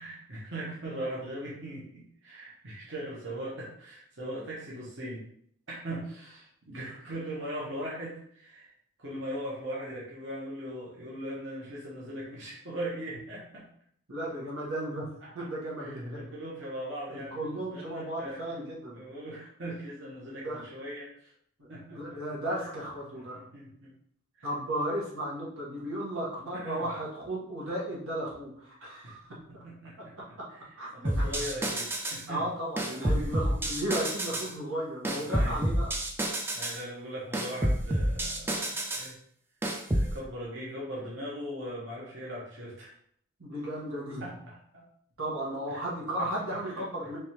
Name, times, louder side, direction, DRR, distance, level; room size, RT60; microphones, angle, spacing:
voice 1, 0.0-5.2 5.7-8.7 9.0-13.6 15.2-15.5 15.8-18.6 18.9-21.3 21.7-22.2 22.5-22.7 23.1-23.9 24.3-24.5 26.5-26.9 29.0-29.2 29.5-32.4 33.2-33.3 35.2-35.6 36.5-39.2 39.9-42.9 44.2-44.8 45.7-45.8 46.2-46.3 46.6-46.8, right 1 dB, 60° right, -6 dB, 1.0 m, -40 dB
voice 2, 14.1-15.0 15.3-16.2 17.1-19.0 20.2-20.6 21.6-23.4 24.4-29.2 29.5-29.6 30.8-31.3 32.3-35.9 43.4-44.2 45.2-47.2, right 1 dB, 90° right, -5 dB, 1.3 m, -35 dB
sound 1, 31.0-32.2 32.8-34.5 35.0-36.8 37.3-39.1 39.6-40.1, right 1 dB, 10° right, 0.3 m, -29 dB
3.4 x 3.2 x 3.0 m, 0.65 s
head